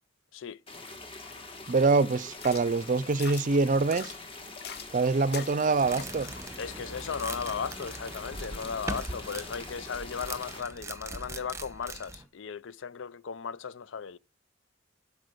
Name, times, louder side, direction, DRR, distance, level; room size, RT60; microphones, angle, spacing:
sound 1, 0.7-10.6, left 3 dB, 30° left, 1.8 m, -44 dB
voice 1, 1.7-4.1 4.9-6.3, right 3 dB, 40° right, 0.5 m, -25 dB
sound 2, 2.3-9.3, left 6 dB, 55° left, 1.0 m, -45 dB
sound 3, 5.8-12.2, right 2 dB, 15° right, 1.0 m, -41 dB
voice 2, 6.6-14.2, left 6 dB, 75° left, 0.5 m, -36 dB
12.0 x 4.8 x 6.6 m
head